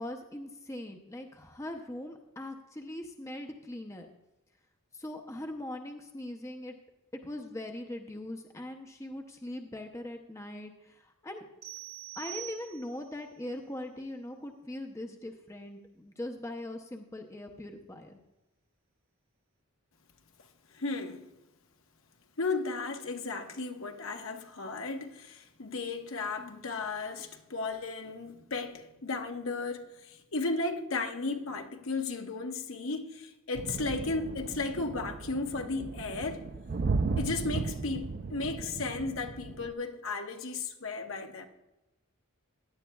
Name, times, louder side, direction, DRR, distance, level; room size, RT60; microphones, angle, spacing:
voice 1, 0.0-4.1 4.9-6.7 7.2-11.5 12.2-18.2, left 1 dB, 15° left, 0.6 m, -41 dB
sound 1, 11.6-13.1, right 17 dB, 85° right, 2.6 m, -44 dB
voice 2, 20.7-21.3 22.4-36.4 37.2-41.5, left 3 dB, 70° left, 1.0 m, -35 dB
sound 2, 33.5-39.7, right 4 dB, 40° right, 0.4 m, -35 dB
16.0 x 10.5 x 2.3 m
head